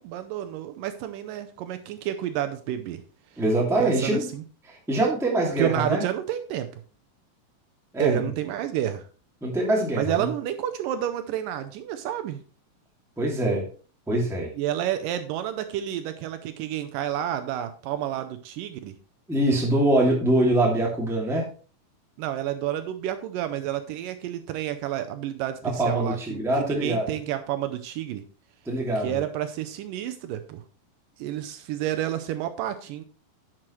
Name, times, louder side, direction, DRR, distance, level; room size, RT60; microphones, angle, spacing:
voice 1, 0.0-3.0 3.8-4.4 5.6-6.7 8.0-9.0 10.0-12.4 14.6-18.9 22.2-28.2 29.0-30.6 31.2-33.0, right 11 dB, 80° right, 9 dB, 2.2 m, -30 dB
voice 2, 3.4-4.3 4.7-6.0 7.9-8.3 9.4-10.3 13.2-13.6 14.1-14.5 19.3-21.5 25.6-27.1 28.6-29.2, right 1 dB, ahead, -2 dB, 1.5 m, -24 dB
10.5 x 7.6 x 3.1 m, 0.38 s
omnidirectional pair, 4.1 m